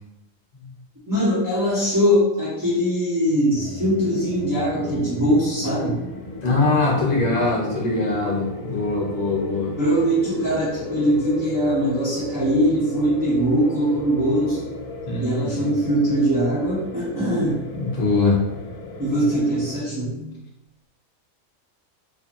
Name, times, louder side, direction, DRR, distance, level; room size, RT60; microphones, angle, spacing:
voice 1, 1.1-6.0 9.8-14.7 15.2-17.6 19.0-20.3, equal, 20° right, -10 dB, 0.7 m, -21 dB
sound 1, 3.5-19.8, left 2 dB, 80° left, 1.0 m, -35 dB
voice 2, 6.4-9.7 15.1-15.7 17.7-18.4, left 3 dB, 40° left, -4 dB, 0.7 m, -22 dB
2.7 x 2.6 x 2.5 m, 0.96 s
omnidirectional pair, 1.4 m